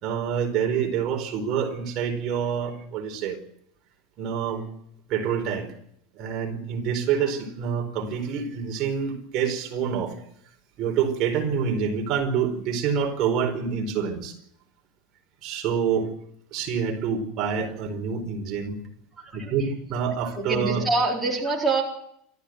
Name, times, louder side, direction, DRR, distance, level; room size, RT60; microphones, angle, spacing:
voice 1, 0.0-3.4 4.2-4.6 5.1-5.7 6.2-10.1 10.8-14.3 15.4-16.1 16.5-18.8 19.3-20.9, right 7 dB, 40° right, 3 dB, 4.5 m, -27 dB
voice 2, 19.2-19.5 20.4-21.8, right 3 dB, 5° right, -3 dB, 4.4 m, -25 dB
27.0 x 14.0 x 7.9 m, 0.72 s
supercardioid pair, 165°, 0 cm